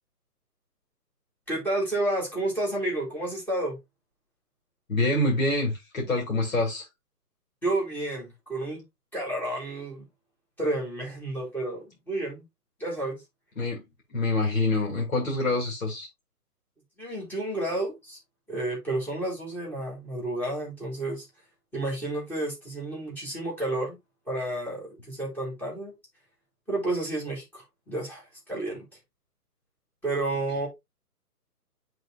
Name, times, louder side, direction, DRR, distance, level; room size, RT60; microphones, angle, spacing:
voice 1, 1.5-3.8 7.6-8.8 9.1-10.1 10.6-12.4 12.8-13.2 17.0-18.2 18.5-21.2 21.7-24.0 24.3-25.9 26.7-28.2 28.5-28.9 30.0-30.7, right 2 dB, 5° left, 2.5 m, -31 dB
voice 2, 4.9-6.9 13.6-13.8 14.1-16.1, left 2 dB, 55° left, 2.8 m, -26 dB
10.5 x 3.9 x 2.5 m
figure-of-eight pair, 140°, 48 cm